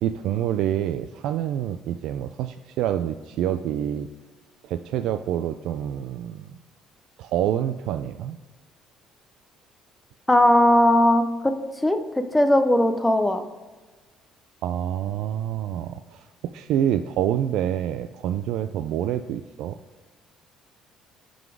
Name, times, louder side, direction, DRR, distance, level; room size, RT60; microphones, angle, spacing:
voice 1, 0.0-4.1 4.6-6.6 7.2-8.4 14.6-19.8, right 11 dB, 70° right, 9 dB, 0.3 m, -27 dB
voice 2, 10.3-11.6 11.8-13.4, left 1 dB, 5° left, 8 dB, 0.5 m, -19 dB
11.0 x 3.9 x 4.7 m, 1.3 s
cardioid pair, 145°, 0 cm